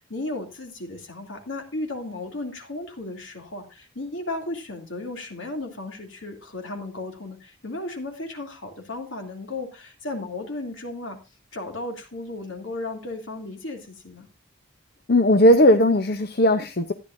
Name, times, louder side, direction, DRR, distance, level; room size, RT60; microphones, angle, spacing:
voice 1, 0.1-11.2 11.5-14.3, left 2 dB, 65° left, 3 dB, 2.7 m, -34 dB
voice 2, 15.1-16.9, equal, 50° left, 8 dB, 0.8 m, -17 dB
14.0 x 10.5 x 2.6 m, 0.29 s
head